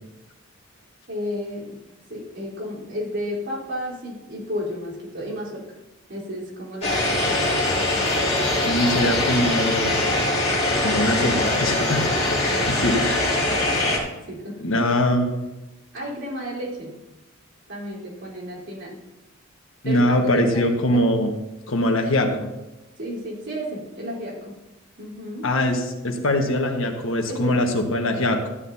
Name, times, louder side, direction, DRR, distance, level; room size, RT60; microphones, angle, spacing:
voice 1, 1.1-1.8 2.1-5.6 6.1-7.1 12.3-12.6 13.5-13.6 13.9-14.8 15.9-16.9 17.7-19.0 19.8-20.2 20.5-20.6 23.0-24.6 25.0-25.5 27.3-27.6, equal, 55° right, -5 dB, 4.0 m, -32 dB
sound 1, 6.8-14.0, left 2 dB, 30° left, 2.8 m, -22 dB
voice 2, 8.6-9.9 10.8-12.0 12.4-13.2 14.6-15.3 19.8-21.3 21.7-22.5 25.4-28.5, left 1 dB, 70° left, 3 dB, 1.4 m, -22 dB
14.0 x 10.0 x 2.8 m, 1.0 s
head